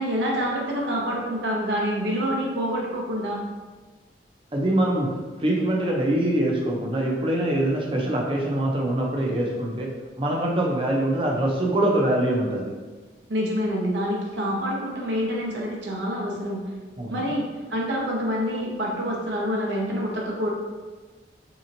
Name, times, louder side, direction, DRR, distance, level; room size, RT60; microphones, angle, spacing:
voice 1, 0.0-3.4 13.3-16.7 17.1-20.5, equal, 85° right, -2 dB, 0.8 m, -27 dB
voice 2, 4.5-9.9 10.2-12.7 17.0-17.2, right 1 dB, 30° right, -1 dB, 0.5 m, -24 dB
4.0 x 2.9 x 2.6 m, 1.3 s
head